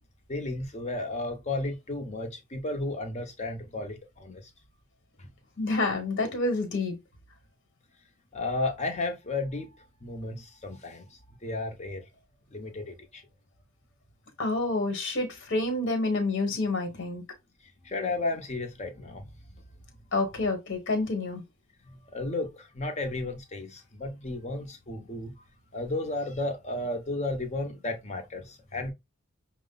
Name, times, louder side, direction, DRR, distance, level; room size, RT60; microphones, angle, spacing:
voice 1, 0.3-4.5 5.2-5.3 8.3-9.7 10.0-11.1 11.4-12.1 12.5-13.2 17.8-19.2 19.5-19.6 21.8-25.3 25.7-28.9, left 2 dB, 30° left, 0.8 m, -33 dB
voice 2, 5.6-6.9 14.4-17.2 20.1-21.4, left 2 dB, 55° left, 1.2 m, -28 dB
6.1 x 2.1 x 3.9 m
head